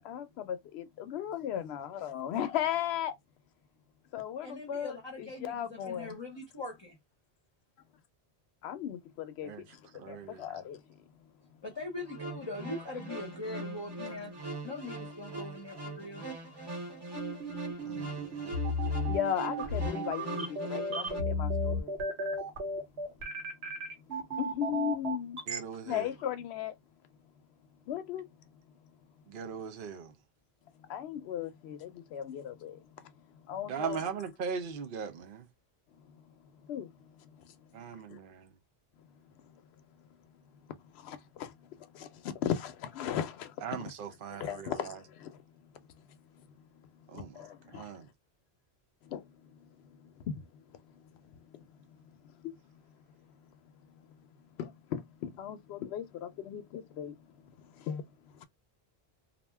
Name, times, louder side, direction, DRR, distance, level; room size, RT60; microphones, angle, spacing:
voice 1, 0.0-3.2 4.1-6.2 8.6-11.0 19.1-21.9 24.4-25.4 25.8-26.7 27.9-28.3 30.8-34.0 36.0-37.8 39.4-39.6 40.8-43.7 44.3-45.4 45.7-46.2 47.1-47.8 49.0-51.6 52.2-52.5 54.6-58.4, left 10 dB, 75° left, 0.8 m, -38 dB
voice 2, 4.4-7.0 11.6-14.3 14.6-16.3, left 2 dB, 30° left, 0.7 m, -41 dB
voice 3, 9.9-10.6 17.8-18.6 25.5-26.1 29.3-30.2 33.7-35.5 37.7-38.3 43.6-45.0 47.1-47.4 47.7-48.0, right 6 dB, 60° right, 0.7 m, -39 dB
sound 1, 12.0-21.2, right 2 dB, 25° right, 0.8 m, -41 dB
sound 2, 17.2-25.6, equal, 85° right, 1.2 m, -33 dB
2.5 x 2.1 x 3.3 m
omnidirectional pair, 1.1 m